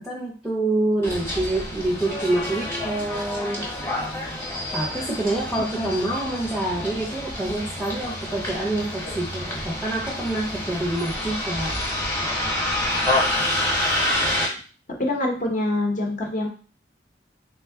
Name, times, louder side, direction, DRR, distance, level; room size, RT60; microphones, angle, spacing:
voice 1, 0.0-3.6 4.7-11.7 12.2-12.4, right 2 dB, ahead, -4 dB, 0.5 m, -27 dB
Bus, 1.0-14.5, left 1 dB, 15° left, 1.0 m, -28 dB
voice 2, 5.5-6.0 15.0-16.5, left 1 dB, 45° left, 1 dB, 0.8 m, -25 dB
3.5 x 2.2 x 3.4 m, 0.38 s
head